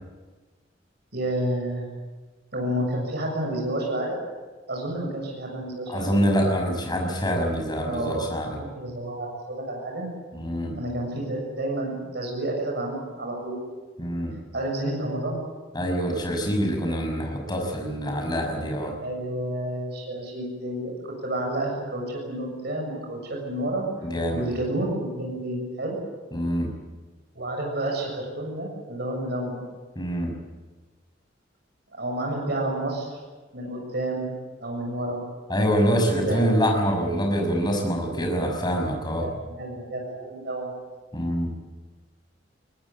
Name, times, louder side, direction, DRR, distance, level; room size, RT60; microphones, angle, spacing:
voice 1, 1.1-1.9 2.5-4.2 4.7-6.1 7.8-10.1 10.8-13.6 14.5-15.4 19.0-23.9 24.3-26.0 27.3-29.7 32.0-33.1 33.5-34.3 34.6-35.2 36.1-36.6 39.2-40.7, right 1 dB, 60° right, 1 dB, 6.9 m, -30 dB
voice 2, 5.9-8.6 10.3-10.8 14.0-14.3 15.7-18.9 24.0-24.4 26.3-26.7 29.9-30.3 35.5-39.3 41.1-41.5, equal, 25° left, 2 dB, 6.2 m, -25 dB
22.5 x 19.5 x 8.8 m, 1.3 s
head